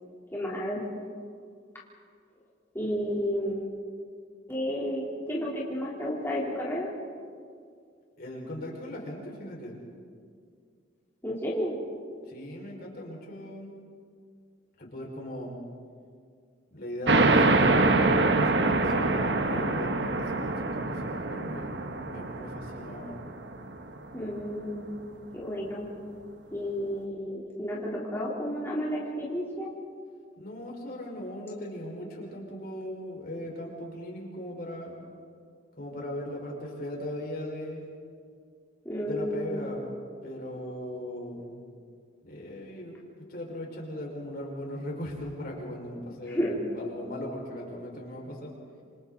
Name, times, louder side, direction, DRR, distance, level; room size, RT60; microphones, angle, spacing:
voice 1, 0.3-0.8 2.7-3.8 4.5-6.9 11.2-11.8 24.1-24.9 25.3-25.9 26.5-29.7 38.9-39.7 46.3-46.7, equal, 15° left, -6 dB, 3.5 m, -31 dB
voice 2, 8.2-9.8 12.3-13.7 14.8-15.6 16.7-23.2 30.4-35.0 35.8-37.8 39.0-39.9 40.2-41.5 42.2-48.5, left 1 dB, 55° left, -1 dB, 5.2 m, -38 dB
sound 1, 17.1-24.2, right 2 dB, 65° right, 1.2 m, -25 dB
28.0 x 27.0 x 4.0 m, 2.2 s
head